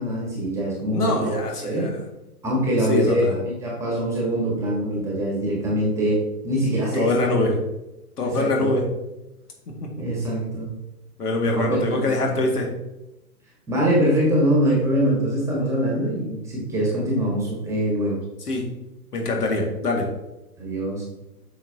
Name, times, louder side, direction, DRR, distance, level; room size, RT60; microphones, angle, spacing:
voice 1, 0.0-1.4 1.6-1.9 2.4-7.4 8.2-8.7 10.0-10.7 11.5-12.4 13.7-18.2 20.6-21.0, right 1 dB, 5° right, -3 dB, 1.4 m, -23 dB
voice 2, 0.9-1.9 2.8-3.4 6.9-7.7 8.2-8.8 9.7-9.8 11.2-12.7 18.5-18.7 19.1-20.1, left 2 dB, 80° left, 1 dB, 2.2 m, -24 dB
8.9 x 6.0 x 2.9 m, 0.95 s
hypercardioid pair, 150°, 46 cm